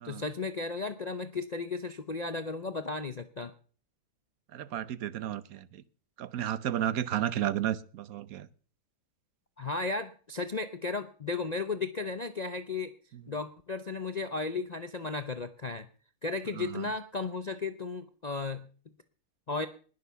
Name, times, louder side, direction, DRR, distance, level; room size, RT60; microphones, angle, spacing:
voice 1, 0.0-3.5 9.6-12.9 13.3-15.9 16.2-18.6 19.5-19.7, left 3 dB, 75° left, 10 dB, 0.3 m, -34 dB
voice 2, 4.5-5.7 6.2-8.5 16.5-16.8, right 11 dB, 60° right, 17 dB, 1.1 m, -32 dB
20.0 x 6.8 x 6.9 m, 0.42 s
omnidirectional pair, 1.9 m